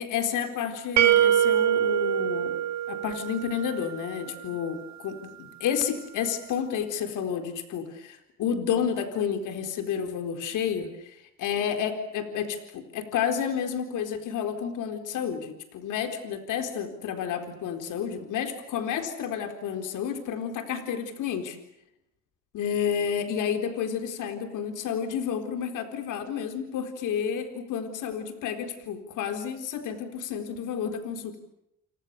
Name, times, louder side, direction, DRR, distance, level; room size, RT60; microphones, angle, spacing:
voice 1, 0.0-2.6 2.9-21.6 22.5-31.4, left 8 dB, 85° left, 7 dB, 4.2 m, -30 dB
sound 1, 1.0-3.8, right 10 dB, 65° right, 2.1 m, -23 dB
30.0 x 29.0 x 6.8 m, 0.82 s
cardioid pair, 90°, 30 cm